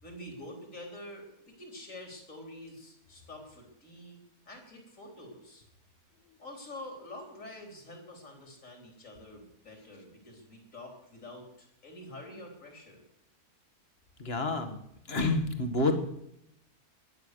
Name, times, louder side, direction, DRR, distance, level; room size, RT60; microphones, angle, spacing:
voice 1, 0.0-4.2 4.5-5.6 6.4-13.0, left 1 dB, 55° left, 2 dB, 4.2 m, -47 dB
voice 2, 14.2-14.8 15.1-15.9, left 2 dB, 40° left, 7 dB, 2.0 m, -28 dB
21.0 x 9.7 x 6.7 m, 0.76 s
omnidirectional pair, 1.6 m